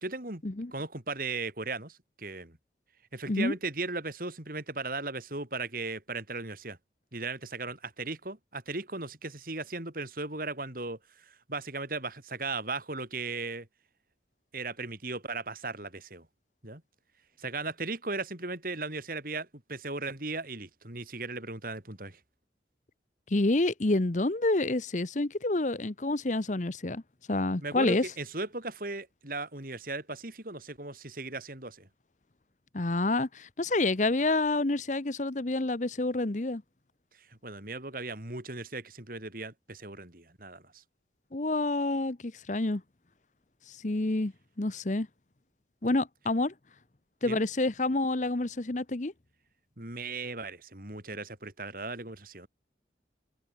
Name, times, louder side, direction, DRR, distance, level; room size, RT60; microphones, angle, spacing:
voice 1, 0.0-0.4 0.7-2.6 3.1-6.8 7.1-13.7 14.5-16.3 16.6-16.8 17.4-22.2 27.6-31.9 37.4-40.8 47.3-47.4 49.8-52.5, right 3 dB, 50° right, 3.5 m, -37 dB
voice 2, 23.3-27.0 27.3-28.1 32.7-36.6 41.3-42.8 43.7-44.3 44.6-45.1 45.8-46.5 47.2-49.1, left 2 dB, 40° left, 0.9 m, -28 dB
open air
head